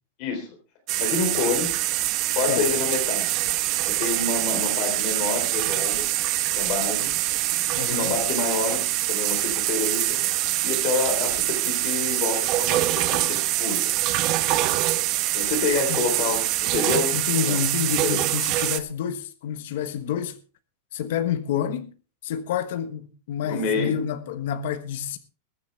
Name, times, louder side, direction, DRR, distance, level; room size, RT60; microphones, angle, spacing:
voice 1, 0.2-0.5 1.0-1.8 2.3-3.3 3.8-6.1 6.6-7.1 7.9-8.8 9.1-10.2 10.6-13.9 15.3-17.6 18.0-18.2 23.4-23.9, left 4 dB, 40° left, 3.6 m, -28 dB
sound 1, 0.9-18.8, right 15 dB, 35° right, 1.0 m, -24 dB
voice 2, 7.7-8.2 15.9-16.1 17.1-20.4 20.9-21.9 22.2-25.2, left 8 dB, 60° left, 1.3 m, -28 dB
21.5 x 9.7 x 3.4 m
supercardioid pair, 170°, 0 cm